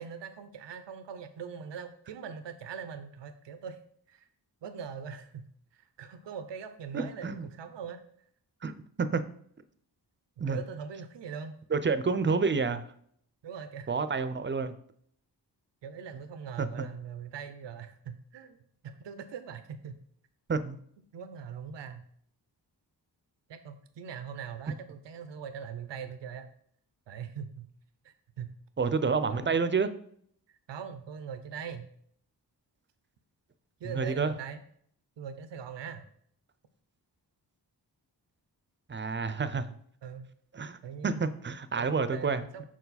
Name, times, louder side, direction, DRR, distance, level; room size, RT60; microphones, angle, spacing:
voice 1, 0.0-3.8 4.1-4.3 4.6-5.5 5.7-8.0 10.5-11.6 13.4-13.9 15.8-19.9 21.1-22.0 23.5-26.5 27.1-27.7 28.0-28.5 28.8-28.9 29.3-29.5 30.7-31.9 33.8-34.6 35.2-36.1 40.0-40.3 40.8-41.2 41.8-42.6, right 7 dB, 85° right, 10 dB, 0.6 m, -41 dB
voice 2, 6.9-7.5 8.6-9.2 10.4-10.6 11.7-12.9 13.9-14.8 16.6-16.8 20.5-20.8 28.8-29.9 33.8-34.3 38.9-39.8 40.5-42.4, right 4 dB, 30° right, 12 dB, 0.5 m, -29 dB
5.9 x 4.7 x 4.1 m, 0.64 s
cardioid pair, 65°, 42 cm